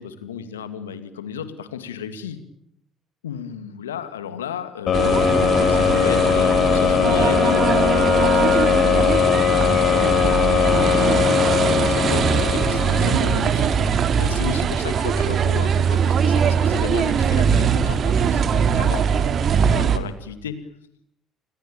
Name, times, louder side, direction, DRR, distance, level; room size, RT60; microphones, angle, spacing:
voice 1, 0.0-2.4 3.2-20.6, left 8 dB, 85° left, 11 dB, 2.3 m, -34 dB
sound 1, 4.9-13.8, left 9 dB, 50° left, 2.5 m, -20 dB
sound 2, 4.9-20.0, right 7 dB, 50° right, 2.4 m, -21 dB
30.0 x 21.0 x 8.9 m, 0.70 s
hypercardioid pair, 55°, 0 cm